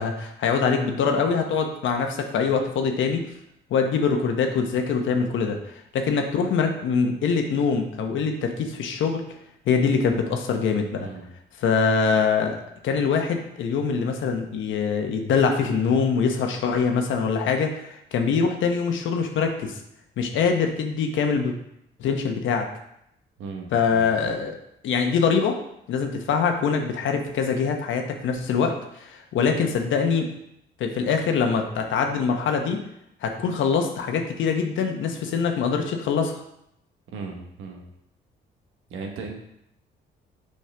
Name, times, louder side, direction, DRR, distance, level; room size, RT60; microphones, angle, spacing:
voice 1, 0.0-3.2 3.7-5.6 5.9-9.2 9.7-11.1 11.6-19.8 20.2-21.5 22.0-22.7 23.7-24.6 24.8-25.6 25.9-30.3 30.8-32.8 33.2-36.4, left 5 dB, 75° left, 4 dB, 1.0 m, -23 dB
voice 2, 23.4-24.1 37.1-37.8 38.9-39.3, right 4 dB, 85° right, 1 dB, 1.3 m, -36 dB
6.5 x 5.4 x 3.4 m, 0.79 s
cardioid pair, 90°, 20 cm